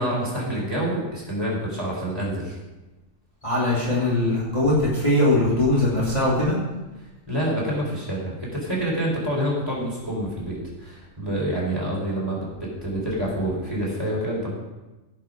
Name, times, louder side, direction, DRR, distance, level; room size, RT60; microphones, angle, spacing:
voice 1, 0.0-2.6 7.3-14.5, right 1 dB, 20° right, -5 dB, 4.2 m, -27 dB
voice 2, 3.4-6.6, left 1 dB, 25° left, -8 dB, 3.0 m, -21 dB
17.0 x 6.1 x 5.3 m, 1.1 s
omnidirectional pair, 1.4 m